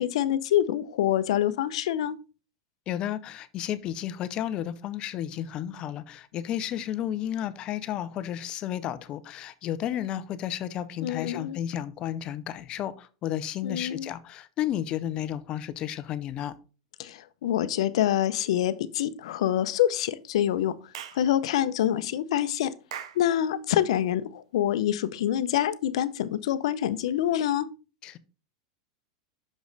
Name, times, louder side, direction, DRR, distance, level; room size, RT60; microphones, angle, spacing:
voice 1, 0.0-2.1 11.0-11.6 13.6-14.1 17.0-20.7 21.1-22.7 23.2-27.7, left 11 dB, 75° left, 0.6 m, -26 dB
voice 2, 2.9-16.5 28.0-28.2, left 11 dB, 30° left, 0.5 m, -32 dB
Clapping / Chirp tweet, 20.9-21.3 22.9-23.3, right 9 dB, 85° right, 0.7 m, -39 dB
6.3 x 5.1 x 3.9 m
supercardioid pair, 165°, 3 cm